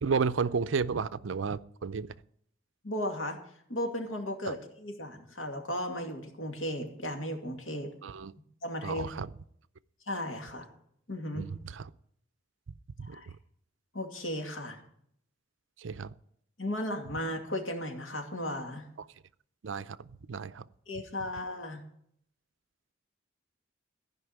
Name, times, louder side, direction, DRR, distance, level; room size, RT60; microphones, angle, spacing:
voice 1, 0.0-2.1 4.5-4.6 8.0-8.3 8.8-9.3 11.3-11.9 13.0-13.2 15.8-16.1 19.6-20.6, right 5 dB, 80° right, 16 dB, 0.5 m, -32 dB
voice 2, 2.8-3.4 3.7-7.9 8.6-9.1 10.1-10.7 11.1-11.5 13.0-13.3 13.9-14.8 16.6-18.8 20.9-21.8, left 1 dB, 90° left, 3 dB, 2.4 m, -35 dB
15.0 x 5.4 x 9.5 m, 0.70 s
head